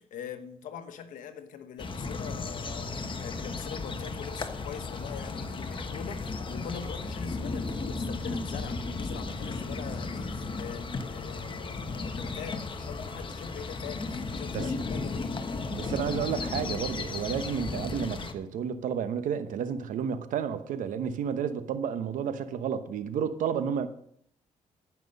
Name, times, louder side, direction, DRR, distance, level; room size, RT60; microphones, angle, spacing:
voice 1, 0.0-15.4 17.4-17.5, left 7 dB, 80° left, 1.2 m, -43 dB
sound 1, 1.8-18.3, left 3 dB, 40° left, 1.2 m, -35 dB
voice 2, 15.7-23.9, right 8 dB, 80° right, 1.0 m, -31 dB
14.0 x 6.0 x 5.4 m
cardioid pair, 75°, 13 cm